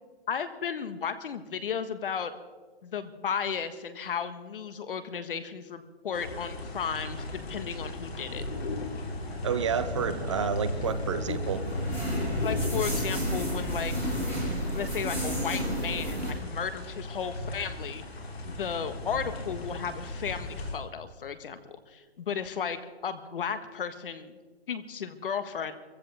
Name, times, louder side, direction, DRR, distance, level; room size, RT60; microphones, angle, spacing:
voice 1, 0.3-2.3 2.8-8.4 12.4-13.9 14.7-18.0 18.5-24.4 24.7-25.7, left 7 dB, 60° left, 11 dB, 1.4 m, -34 dB
sound 1, 6.1-20.8, left 1 dB, 75° left, 3.6 m, -36 dB
voice 2, 9.4-11.6, right 7 dB, 30° right, 12 dB, 0.6 m, -30 dB
sound 2, 10.4-16.3, equal, 5° left, 5.7 m, -32 dB
24.0 x 15.5 x 3.5 m, 1.4 s
hypercardioid pair, 160°, 31 cm